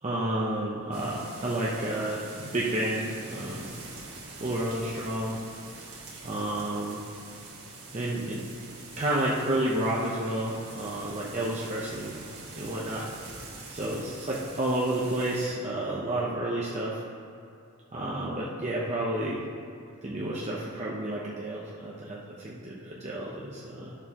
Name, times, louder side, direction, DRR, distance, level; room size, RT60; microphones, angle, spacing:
voice 1, 0.0-3.7 4.4-5.4 6.2-7.0 7.9-8.5 9.0-13.1 13.7-17.0 17.9-19.4 20.0-24.0, right 1 dB, 30° right, -5 dB, 0.7 m, -31 dB
sound 1, 0.9-15.5, right 3 dB, 70° right, 1.7 m, -44 dB
10.5 x 6.7 x 2.9 m, 2.6 s
head